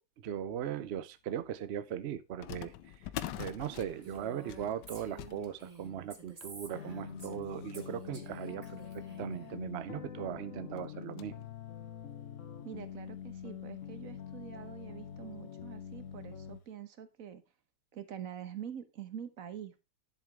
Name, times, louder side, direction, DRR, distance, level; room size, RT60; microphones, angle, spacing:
voice 1, 0.2-2.7 3.4-11.5, right 9 dB, 80° right, 0.5 m, -39 dB
sound 1, 1.0-1.1 2.4-9.3 9.9-10.0 10.2-10.4 10.8-11.5 12.0-12.1 12.9-13.0 13.4-13.5 14.9-15.2 15.6-15.7 16.3-16.5, left 12 dB, 75° left, 1.3 m, -47 dB
Female speech woman speaking, 4.0-7.4 7.7-9.5, right 4 dB, 25° right, 1.3 m, -50 dB
sound 2, 6.7-16.6, left 8 dB, 50° left, 1.2 m, -45 dB
voice 2, 12.6-17.4 17.9-19.8, right 9 dB, 55° right, 1.3 m, -45 dB
10.5 x 7.3 x 3.5 m
omnidirectional pair, 2.0 m